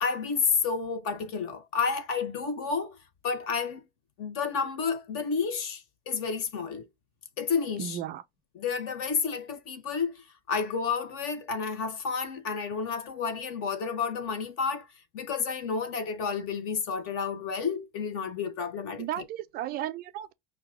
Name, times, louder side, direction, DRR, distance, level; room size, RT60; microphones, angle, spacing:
voice 1, 0.0-3.0 3.2-3.8 4.2-6.8 7.4-8.0 8.5-10.1 10.5-14.9 15.1-19.1, left 5 dB, 45° left, 1.0 m, -30 dB
voice 2, 7.8-8.2 19.0-20.3, right 11 dB, 30° right, 0.4 m, -34 dB
5.7 x 2.4 x 3.6 m
cardioid pair, 155°, 31 cm